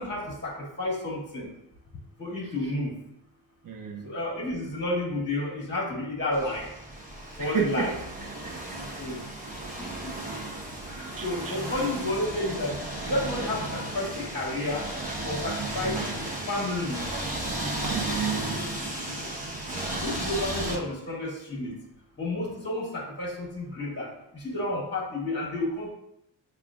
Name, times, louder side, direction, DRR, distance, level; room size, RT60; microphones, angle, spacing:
voice 1, 0.0-1.5 2.2-3.0 4.0-6.7 7.4-7.9 9.0-9.2 9.8-10.1 10.8-12.8 13.0-14.9 15.2-16.0 16.5-17.0 20.0-21.8 22.2-25.9, left 1 dB, 25° left, -3 dB, 1.5 m, -31 dB
voice 2, 3.6-4.1 7.4-7.9 8.4-8.5 11.2-11.6 17.8-18.6 23.8-24.0, right 6 dB, 45° right, 3 dB, 0.8 m, -32 dB
sound 1, 6.3-20.8, right 2 dB, 15° right, 1.0 m, -34 dB
6.6 x 2.4 x 2.4 m, 0.80 s
cardioid pair, 75°, 47 cm